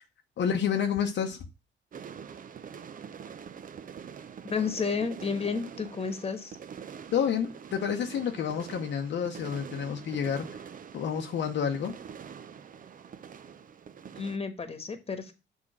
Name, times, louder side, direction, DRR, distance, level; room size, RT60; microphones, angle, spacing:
voice 1, 0.4-1.5 7.1-10.5 10.9-11.9, left 8 dB, 65° left, 0.9 m, -29 dB
sound 1, 1.9-14.4, right 7 dB, 45° right, 0.6 m, -45 dB
voice 2, 4.4-6.5 14.1-15.3, left 5 dB, 30° left, 1.3 m, -31 dB
6.4 x 3.7 x 6.1 m
cardioid pair, 90°, 20 cm